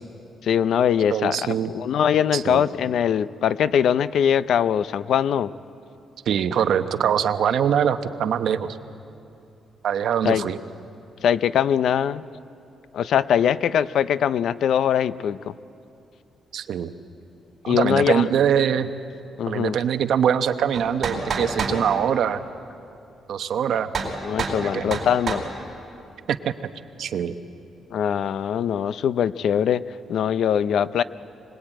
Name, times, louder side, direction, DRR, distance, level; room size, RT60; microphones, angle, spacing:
voice 1, 0.4-5.5 10.2-10.4 11.2-12.2 12.9-15.5 17.7-18.3 19.4-19.8 24.2-25.4 27.9-29.8 30.1-31.0, left 9 dB, 65° left, 16 dB, 0.5 m, -22 dB
voice 2, 1.1-1.7 2.3-2.6 6.3-8.7 9.8-10.6 16.5-16.9 17.6-18.9 19.5-22.4 23.3-23.9 24.6-25.0 26.3-26.5 27.0-27.4, right 8 dB, 65° right, 9 dB, 1.0 m, -23 dB
sound 1, 20.7-21.8 23.9-24.1 24.4-24.6 24.9-25.5, right 4 dB, 40° right, 4.3 m, -27 dB
25.5 x 20.0 x 9.0 m, 2.7 s
cardioid pair, 145°, 0 cm